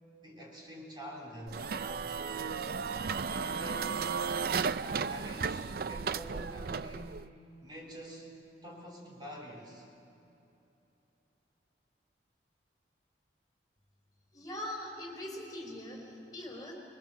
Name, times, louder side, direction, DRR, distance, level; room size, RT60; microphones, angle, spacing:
voice 1, 0.2-2.5 3.2-4.2 4.8-7.3 7.6-8.3 8.6-9.9, equal, 25° right, -2 dB, 3.5 m, -46 dB
sound 1, 1.5-7.3, right 5 dB, 55° right, 0.4 m, -34 dB
voice 2, 14.3-16.7, left 1 dB, 20° left, 0 dB, 4.1 m, -42 dB
25.0 x 22.0 x 7.3 m, 3.0 s
head